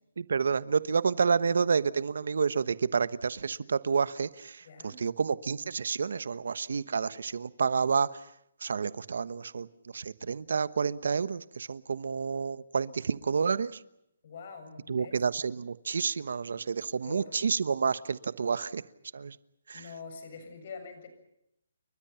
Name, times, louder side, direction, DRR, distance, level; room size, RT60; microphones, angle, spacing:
voice 1, 0.2-8.2 8.6-9.7 9.9-13.7 14.9-18.8 19.1-19.4 19.7-19.8, right 5 dB, 65° right, 16 dB, 1.1 m, -29 dB
voice 2, 4.6-5.0 14.2-15.2 17.0-17.4 19.7-21.1, left 5 dB, 40° left, 7 dB, 7.2 m, -45 dB
30.0 x 23.5 x 5.8 m, 0.79 s
hypercardioid pair, 170°, 0 cm